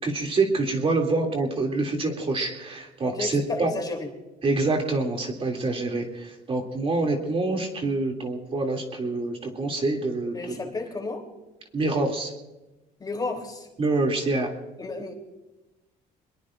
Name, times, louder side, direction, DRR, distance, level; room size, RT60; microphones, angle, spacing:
voice 1, 0.0-3.7 4.4-10.4 11.7-12.3 13.8-14.5, right 2 dB, 35° right, 2 dB, 2.8 m, -26 dB
voice 2, 3.0-4.1 10.3-11.2 13.0-13.7 14.8-15.1, left 3 dB, 25° left, 2 dB, 3.3 m, -32 dB
24.0 x 21.5 x 2.6 m, 1.0 s
cardioid pair, 110°, 17 cm